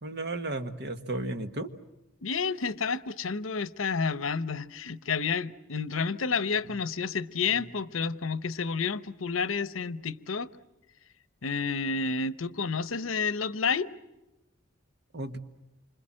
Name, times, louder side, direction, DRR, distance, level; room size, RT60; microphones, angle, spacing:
voice 1, 0.0-1.7 15.1-15.4, right 2 dB, 55° right, 1.6 m, -34 dB
voice 2, 2.2-10.5 11.4-13.9, left 5 dB, 85° left, 0.9 m, -30 dB
28.0 x 26.0 x 7.6 m
head